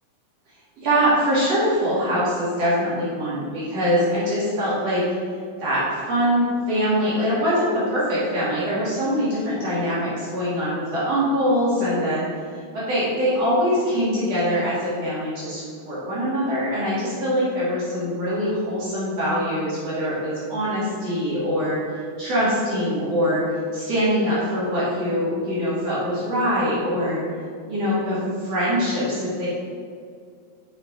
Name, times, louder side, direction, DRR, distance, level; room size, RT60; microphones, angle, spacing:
voice 1, 0.8-5.0 5.6-12.2 12.7-23.4 23.7-27.2 27.6-29.5, equal, 55° right, -9 dB, 3.3 m, -23 dB
6.4 x 6.2 x 5.3 m, 2.1 s
omnidirectional pair, 3.6 m